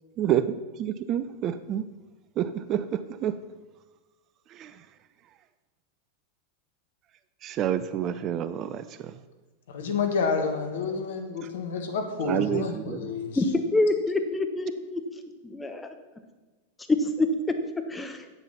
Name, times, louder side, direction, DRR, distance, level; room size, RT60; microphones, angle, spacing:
voice 1, 0.8-1.8 2.4-3.4 4.6-4.7 7.4-8.8 12.2-13.1, right 10 dB, 35° right, 13 dB, 0.5 m, -28 dB
voice 2, 9.7-13.4, left 5 dB, 60° left, 5 dB, 1.5 m, -29 dB
voice 3, 13.4-15.0 15.5-15.9 16.9-17.6 17.9-18.2, left 2 dB, 10° left, 6 dB, 1.0 m, -26 dB
8.6 x 8.1 x 5.8 m, 1.3 s
figure-of-eight pair, 90°, 0 cm